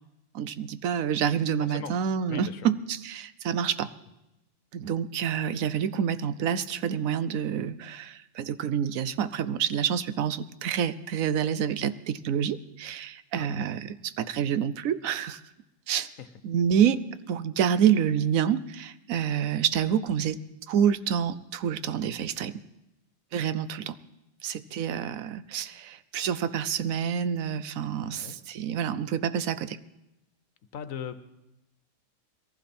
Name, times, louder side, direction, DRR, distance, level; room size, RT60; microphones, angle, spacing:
voice 1, 0.3-3.9 4.7-15.4 15.9-16.1 16.4-17.0 17.3-20.4 20.7-22.5 23.3-24.0 24.4-29.8, right 8 dB, 90° right, 14 dB, 1.1 m, -27 dB
voice 2, 1.6-1.9 2.3-2.7 13.4-13.7 16.2-16.3 28.0-28.4 30.7-31.2, left 8 dB, 75° left, 11 dB, 1.3 m, -39 dB
22.0 x 15.0 x 4.3 m, 0.93 s
omnidirectional pair, 1.4 m